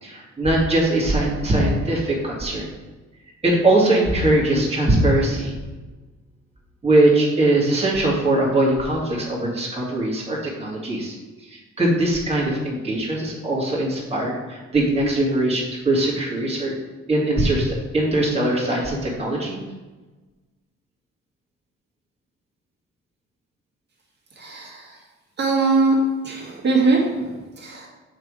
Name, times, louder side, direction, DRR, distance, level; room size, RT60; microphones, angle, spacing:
voice 1, 0.0-2.7 3.4-5.5 6.8-11.1 11.5-16.7 17.1-19.6, right 1 dB, 20° right, -4 dB, 2.1 m, -21 dB
voice 2, 24.3-25.1 25.4-26.0 26.2-27.9, right 3 dB, 35° right, -2 dB, 1.9 m, -22 dB
6.6 x 3.6 x 4.8 m, 1.2 s
cardioid pair, 90°, 30 cm